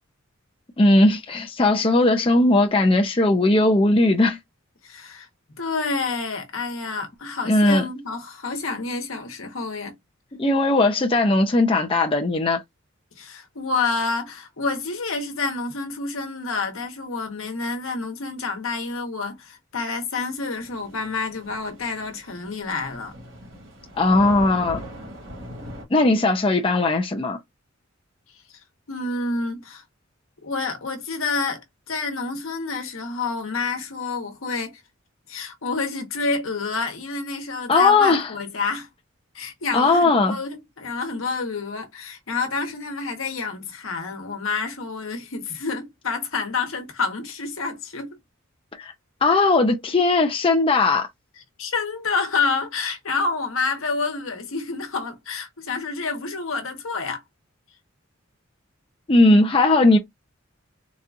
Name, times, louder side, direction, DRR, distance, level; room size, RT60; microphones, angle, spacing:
voice 1, 0.8-4.4 7.5-7.9 10.4-12.6 24.0-24.8 25.9-27.4 37.7-38.3 39.7-40.4 48.8-48.9 49.2-51.1 59.1-60.0, left 2 dB, 25° left, 0.5 m, -18 dB
voice 2, 4.8-5.3 5.6-10.0 13.2-23.1 28.9-29.8 30.4-34.8 35.3-38.9 39.3-48.2 51.6-57.2, left 4 dB, 85° left, 1.1 m, -28 dB
Thunder / Rain, 20.6-25.9, equal, 60° right, 1.8 m, -40 dB
4.1 x 2.4 x 2.5 m
head